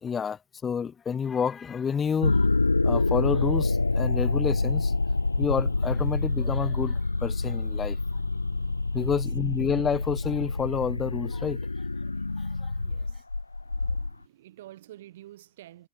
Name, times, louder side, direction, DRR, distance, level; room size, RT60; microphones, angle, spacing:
voice 1, 0.0-2.5 2.8-4.9 5.4-8.0 8.9-11.6 12.6-12.7, left 7 dB, 20° left, 0.6 m, -29 dB
sound 1, 2.2-14.1, left 3 dB, 85° left, 1.0 m, -27 dB
voice 2, 12.8-13.2 13.6-15.9, right 14 dB, 60° right, 3.7 m, -49 dB
figure-of-eight pair, 90°, 0 cm